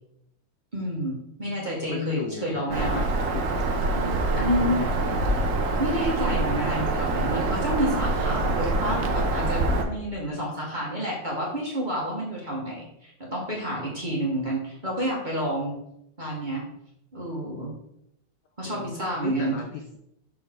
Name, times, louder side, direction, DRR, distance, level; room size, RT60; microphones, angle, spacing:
voice 1, 0.7-3.0 3.9-4.8 5.8-15.7 16.2-16.6 17.1-17.7 18.6-19.5, equal, 25° right, -4 dB, 1.2 m, -29 dB
voice 2, 1.6-3.1 3.3-3.4 4.3-5.2 18.6-19.0 19.2-20.0, left 6 dB, 70° left, 3 dB, 1.0 m, -36 dB
Bird vocalization bird call bird song, 2.7-9.8, right 2 dB, 75° right, 0.7 m, -25 dB
6.5 x 4.3 x 3.7 m, 0.79 s
omnidirectional pair, 2.4 m